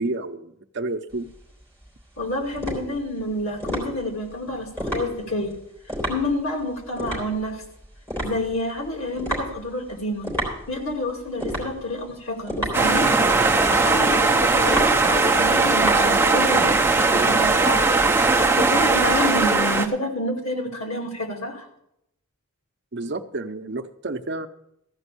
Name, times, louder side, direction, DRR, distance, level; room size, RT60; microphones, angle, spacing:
voice 1, 0.0-1.3 22.9-24.5, right 2 dB, 50° right, 8 dB, 0.7 m, -30 dB
sound 1, 1.1-16.7, equal, 10° left, 3.7 m, -32 dB
voice 2, 2.2-5.5 6.1-7.6 8.2-10.3 10.7-13.1 13.5-17.9 18.5-21.7, left 1 dB, 75° left, 2 dB, 2.4 m, -28 dB
sound 2, 12.7-19.9, right 3 dB, 10° right, 0.7 m, -19 dB
14.5 x 5.3 x 8.3 m, 0.79 s
head